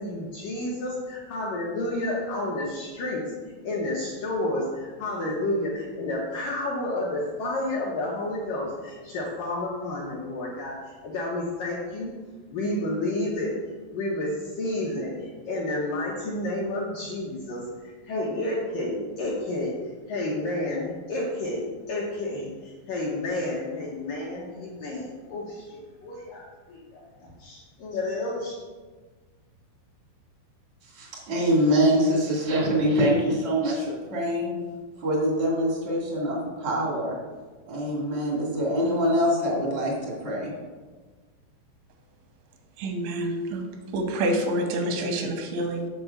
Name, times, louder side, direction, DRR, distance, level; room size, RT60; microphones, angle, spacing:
voice 1, 0.0-12.1 12.5-13.5 13.9-19.7 20.1-28.6, left 1 dB, 75° left, -4 dB, 2.0 m, -30 dB
voice 2, 30.9-34.5 35.0-37.2 37.6-40.5, equal, 70° right, -3 dB, 0.6 m, -24 dB
voice 3, 42.8-43.6 43.9-45.9, right 1 dB, 90° right, 4 dB, 3.3 m, -27 dB
7.7 x 4.6 x 7.0 m, 1.4 s
omnidirectional pair, 5.3 m